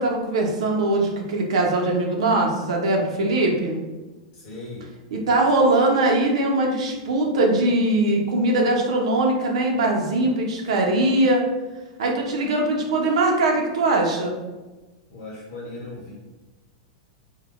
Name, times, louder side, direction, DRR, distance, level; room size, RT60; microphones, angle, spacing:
voice 1, 0.0-3.8 5.1-11.5 12.0-14.4, right 2 dB, 80° right, 0 dB, 0.5 m, -21 dB
voice 2, 4.3-4.9 15.1-16.1, left 2 dB, 45° left, -5 dB, 1.1 m, -37 dB
2.1 x 2.0 x 2.9 m, 1.2 s
supercardioid pair, 155°, 3 cm